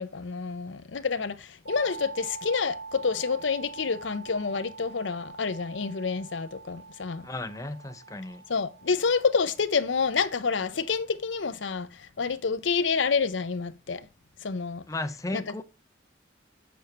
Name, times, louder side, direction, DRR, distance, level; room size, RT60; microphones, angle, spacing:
voice 1, 0.0-7.3 8.5-14.1 14.4-14.8 15.3-15.4, left 5 dB, 80° left, 0.7 m, -28 dB
sound 1, 1.7-11.4, right 4 dB, 50° right, 0.8 m, -45 dB
voice 2, 7.2-8.4 14.9-15.6, left 2 dB, 20° left, 0.7 m, -34 dB
7.9 x 6.9 x 4.2 m
head